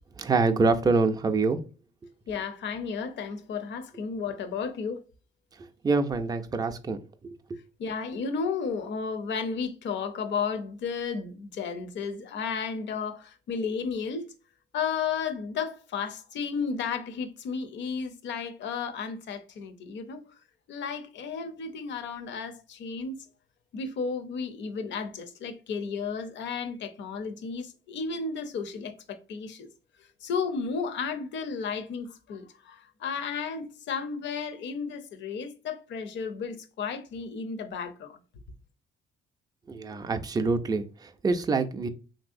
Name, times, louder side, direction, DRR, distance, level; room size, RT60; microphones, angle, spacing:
voice 1, 0.2-1.6 5.8-7.4 39.7-41.9, right 3 dB, 20° right, 0.4 m, -26 dB
voice 2, 2.3-5.0 7.8-14.3 14.7-20.2 20.7-23.2 23.7-29.7 30.2-38.2, left 5 dB, 70° left, 0.6 m, -33 dB
3.1 x 2.7 x 2.5 m
cardioid pair, 90°, 20 cm